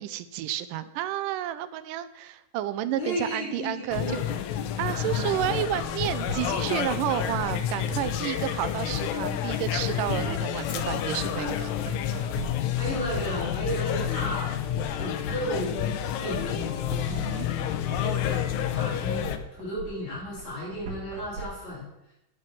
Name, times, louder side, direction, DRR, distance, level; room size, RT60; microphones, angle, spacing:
voice 1, 0.0-4.2 4.8-11.7 17.1-17.5, right 12 dB, 80° right, 13 dB, 2.2 m, -31 dB
voice 2, 3.0-4.2 4.9-5.3 7.9-8.2 12.7-14.5 14.8-15.8 16.2-16.8 17.8-21.9, equal, 55° left, -6 dB, 4.6 m, -34 dB
sound 1, 3.9-19.4, left 10 dB, 75° left, 1.8 m, -29 dB
sound 2, 5.3-21.4, right 4 dB, 65° right, 3.2 m, -41 dB
10.5 x 6.4 x 5.9 m, 0.89 s
omnidirectional pair, 3.8 m